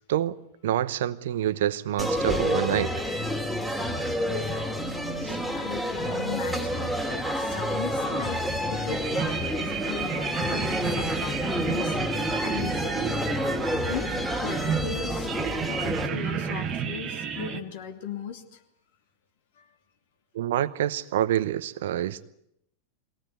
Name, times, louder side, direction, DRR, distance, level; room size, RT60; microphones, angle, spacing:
voice 1, 0.6-3.1 5.2-5.4 20.3-22.2, right 12 dB, 55° right, 16 dB, 0.9 m, -27 dB
sound 1, 2.0-16.1, equal, ahead, 2.8 m, -29 dB
voice 2, 5.5-8.4 8.7-12.0 12.4-13.4 13.9-14.1 14.4-15.3 15.6-18.6 19.6-19.7, left 7 dB, 55° left, 5 dB, 2.7 m, -38 dB
sound 2, 7.9-17.6, right 8 dB, 30° right, 1.5 m, -32 dB
23.0 x 18.0 x 9.3 m, 0.74 s
figure-of-eight pair, 90°, 0 cm